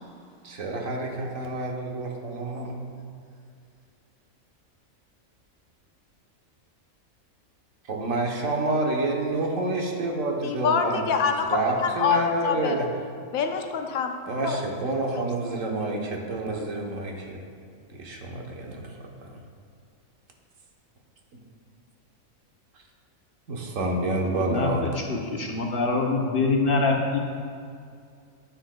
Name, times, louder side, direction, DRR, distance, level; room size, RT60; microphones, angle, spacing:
voice 1, 0.4-2.8 7.9-11.1 11.5-12.9 14.3-17.4 17.9-19.4 21.3-21.4 23.5-24.8, right 2 dB, 70° right, 0 dB, 1.3 m, -28 dB
voice 2, 10.4-12.8 13.3-14.2 14.4-14.6, left 6 dB, 80° left, 5 dB, 1.1 m, -25 dB
voice 3, 24.5-27.2, left 3 dB, 50° left, 0 dB, 0.8 m, -25 dB
9.8 x 8.8 x 2.2 m, 2.4 s
omnidirectional pair, 1.4 m